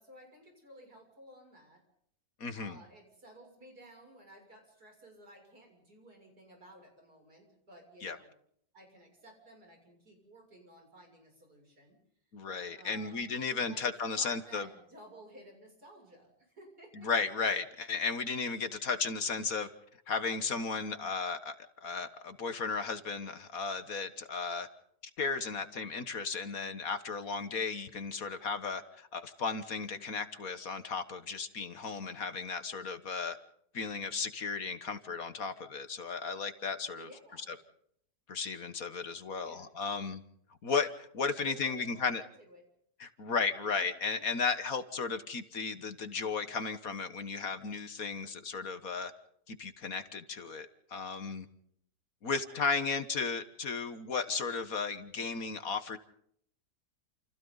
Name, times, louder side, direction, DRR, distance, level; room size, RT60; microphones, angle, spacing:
voice 1, 0.0-1.8 2.5-8.3 8.7-12.0 12.8-13.3 13.7-17.1 37.0-37.5 39.4-39.7 41.4-42.6 52.3-52.9, right 1 dB, 65° right, 2 dB, 7.7 m, -55 dB
voice 2, 2.4-2.8 8.0-8.2 12.3-14.7 17.0-19.7 20.1-24.7 25.2-33.4 33.7-37.1 38.3-40.2 40.6-42.2 43.0-49.1 49.5-51.5 52.2-56.0, left 5 dB, 55° left, 10 dB, 1.8 m, -35 dB
29.5 x 29.0 x 4.0 m, 0.69 s
omnidirectional pair, 1.8 m